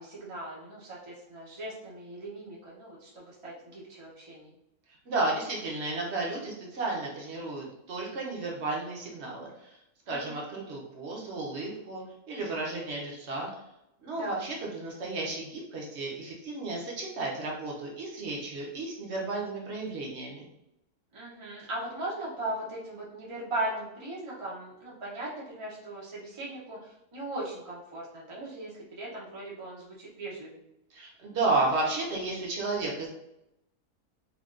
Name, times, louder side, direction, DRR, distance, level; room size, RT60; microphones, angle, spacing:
voice 1, 0.0-4.5 10.1-10.4 14.1-14.4 21.1-30.5, right 1 dB, 35° right, -6 dB, 0.4 m, -38 dB
voice 2, 5.1-9.8 10.1-12.0 12.3-13.5 14.0-20.4 30.9-33.1, right 2 dB, 55° right, -2 dB, 0.9 m, -33 dB
3.4 x 2.3 x 2.4 m, 0.86 s
omnidirectional pair, 1.6 m